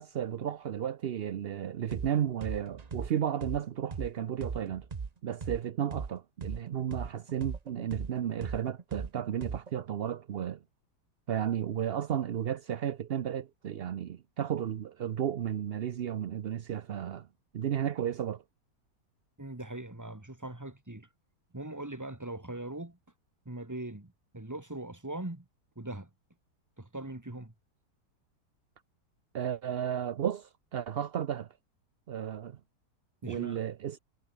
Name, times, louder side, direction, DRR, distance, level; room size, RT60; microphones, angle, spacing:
voice 1, 0.0-4.9 5.2-10.6 11.3-17.3 17.5-18.4 29.3-31.5 32.1-32.6 33.3-34.0, right 9 dB, 65° right, 0.6 m, -33 dB
sound 1, 1.9-2.1 2.4-6.1 6.4-9.8, right 5 dB, 30° right, 0.8 m, -38 dB
voice 2, 19.4-21.1 21.5-23.0 23.5-25.5 25.8-26.1 26.8-27.5 33.2-33.6, right 2 dB, 10° right, 1.9 m, -40 dB
omnidirectional pair, 1.8 m